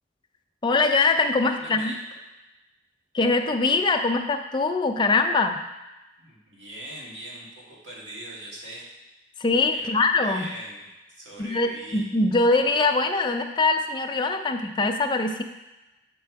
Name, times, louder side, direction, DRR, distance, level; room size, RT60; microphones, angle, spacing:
voice 1, 0.6-1.9 3.1-5.6 9.4-10.5 11.4-15.4, left 3 dB, 25° left, 5 dB, 0.4 m, -23 dB
voice 2, 1.5-2.0 6.2-8.9 9.7-12.0, right 1 dB, 80° right, -4 dB, 1.8 m, -41 dB
7.6 x 3.4 x 4.6 m, 1.0 s
head